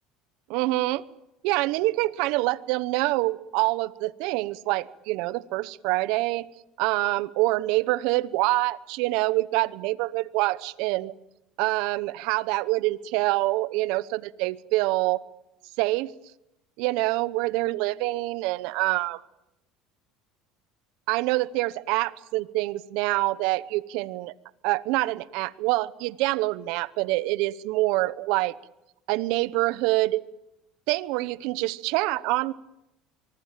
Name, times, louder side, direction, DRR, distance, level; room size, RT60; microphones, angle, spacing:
voice 1, 0.5-1.0 1.4-6.5 6.8-11.1 11.6-15.2 15.8-16.1 16.8-19.2 21.1-24.3 24.6-28.5 29.1-30.2 30.9-32.5, right 19 dB, 75° right, 18 dB, 1.0 m, -26 dB
24.0 x 24.0 x 7.6 m, 0.89 s
supercardioid pair, 105°, 0 cm